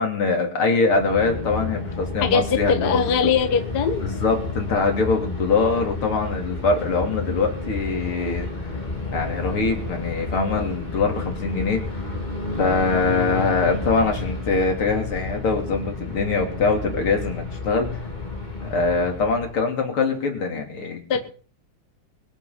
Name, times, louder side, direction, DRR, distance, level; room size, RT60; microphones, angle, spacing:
voice 1, 0.0-3.0 4.0-8.5 9.1-11.8 12.6-18.0 18.6-21.2, left 4 dB, 85° left, 3 dB, 3.9 m, -23 dB
sound 1, 0.9-19.6, left 3 dB, 20° left, 3.7 m, -31 dB
voice 2, 2.2-4.0 21.1-21.2, left 6 dB, 55° left, 8 dB, 1.7 m, -21 dB
23.0 x 8.0 x 5.8 m, 0.41 s
omnidirectional pair, 2.3 m